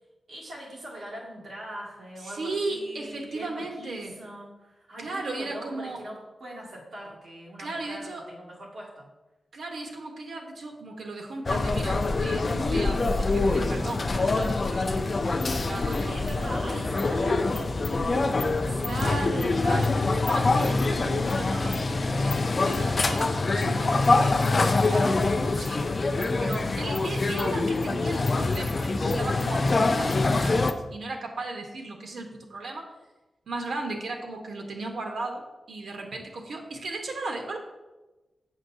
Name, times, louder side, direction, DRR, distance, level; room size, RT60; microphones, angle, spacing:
voice 1, 0.3-9.1 16.1-21.1, right 1 dB, 60° right, -5 dB, 1.9 m, -42 dB
voice 2, 2.2-4.2 5.0-6.0 7.6-8.2 9.5-15.4 15.6-16.2 18.8-20.0 20.3-25.9 26.2-32.9 33.5-37.6, right 2 dB, 80° right, 2 dB, 1.0 m, -36 dB
sound 1, 11.5-30.7, left 3 dB, 40° left, 0.3 m, -25 dB
7.3 x 6.2 x 2.6 m, 1.1 s
wide cardioid pair, 135°, 0 cm